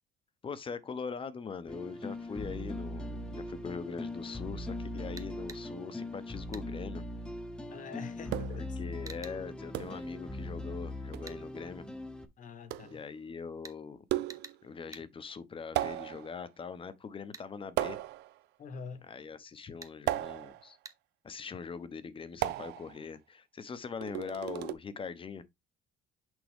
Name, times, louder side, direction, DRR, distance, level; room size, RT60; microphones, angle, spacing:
voice 1, 0.4-7.0 8.5-11.9 12.8-14.0 14.6-18.0 19.0-20.8 21.2-25.4, left 5 dB, 30° left, 0.9 m, -42 dB
sound 1, 1.7-12.3, left 1 dB, 5° left, 1.0 m, -40 dB
sound 2, 5.2-5.6 6.5-6.7 9.1-9.4 11.3-11.4 13.6-13.8 14.3-14.6 14.9-15.1 17.3-17.5 19.8-20.0 20.8-20.9, right 4 dB, 20° right, 0.9 m, -47 dB
voice 2, 7.7-8.8 12.4-13.0 18.6-19.0, left 5 dB, 50° left, 1.2 m, -45 dB
sound 3, 8.3-8.7 9.7-10.1 11.1-11.4 12.7-13.0 14.1-14.6 15.8-16.4 17.8-18.4 20.1-20.7 22.4-23.0 24.0-24.7, right 15 dB, 85° right, 0.6 m, -35 dB
6.3 x 4.4 x 3.5 m
cardioid pair, 110°, 17 cm